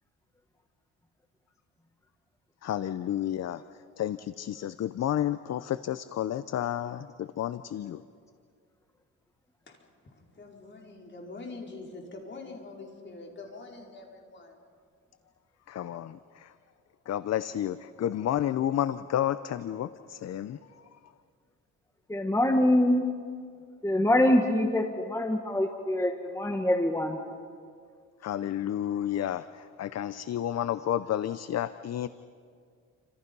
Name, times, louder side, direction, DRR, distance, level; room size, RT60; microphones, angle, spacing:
voice 1, 2.6-3.6 4.0-8.0 15.7-16.5 17.1-20.6 28.2-32.1, left 11 dB, 55° left, 14 dB, 0.7 m, -31 dB
voice 2, 9.7-14.6, left 3 dB, 35° left, 0 dB, 5.0 m, -45 dB
voice 3, 22.1-23.0 23.8-27.2, left 1 dB, 10° left, 4 dB, 1.6 m, -24 dB
29.5 x 26.5 x 5.5 m, 2.2 s
cardioid pair, 110°, 32 cm